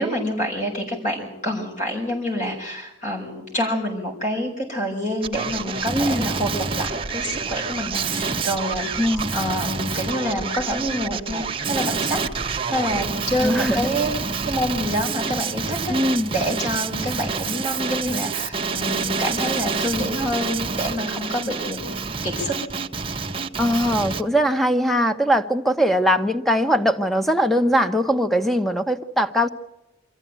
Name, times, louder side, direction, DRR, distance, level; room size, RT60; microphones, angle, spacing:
voice 1, 0.0-8.9 9.3-12.2 12.7-14.1 14.4-22.0 22.2-22.6, equal, 40° left, -2 dB, 5.6 m, -27 dB
Male speech man speaking, 5.2-24.2, right 4 dB, 30° right, 1.0 m, -27 dB
voice 2, 5.9-6.2 9.0-9.3 13.4-13.9 15.9-16.3 23.6-29.5, equal, ahead, 8 dB, 1.0 m, -21 dB
25.5 x 14.5 x 9.0 m, 0.95 s
head